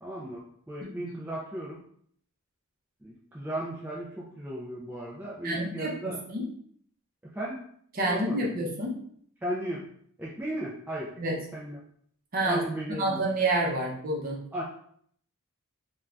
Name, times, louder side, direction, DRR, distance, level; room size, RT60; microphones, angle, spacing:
voice 1, 0.0-1.8 3.0-6.2 7.3-7.6 8.1-8.6 9.4-9.9 10.2-11.1 11.5-11.8 12.4-13.2 14.5-14.6, right 1 dB, 10° right, -6 dB, 0.3 m, -35 dB
voice 2, 5.4-6.5 7.9-9.0 11.2-11.4 12.3-12.6 13.0-14.4, right 1 dB, 40° right, -3 dB, 0.6 m, -28 dB
2.5 x 2.2 x 3.2 m, 0.63 s
head